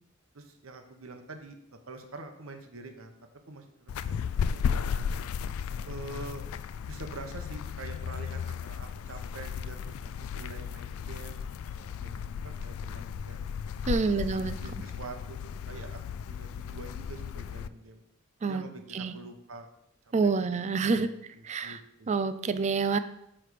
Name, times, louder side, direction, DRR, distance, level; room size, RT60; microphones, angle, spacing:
voice 1, 0.3-3.1 3.5-5.0 5.8-6.5 6.9-13.4 13.8-16.0 16.3-18.0 18.4-19.7 20.5-22.1, right 3 dB, 70° right, 5 dB, 0.9 m, -46 dB
sound 1, 3.9-17.7, left 7 dB, 80° left, 0.3 m, -35 dB
voice 2, 13.9-14.5 18.4-18.6 18.9-19.1 20.1-21.1 21.5-21.8 22.1-23.0, right 4 dB, 35° right, 12 dB, 0.4 m, -27 dB
8.6 x 3.3 x 5.0 m, 0.79 s
head